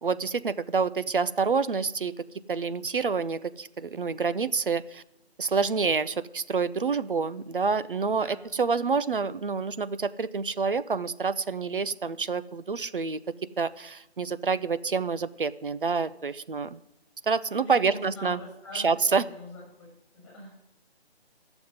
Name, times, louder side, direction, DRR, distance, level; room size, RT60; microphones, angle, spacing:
voice 1, 0.0-2.1 2.5-5.0 5.4-13.2 13.6-16.8 17.2-18.4 18.7-19.3, right 5 dB, 55° right, 15 dB, 0.5 m, -27 dB
voice 2, 8.1-8.5 17.6-18.9 19.3-19.9 20.1-20.5, left 1 dB, 5° left, -3 dB, 5.5 m, -43 dB
11.0 x 7.0 x 9.2 m, 0.86 s
figure-of-eight pair, 165°, 32 cm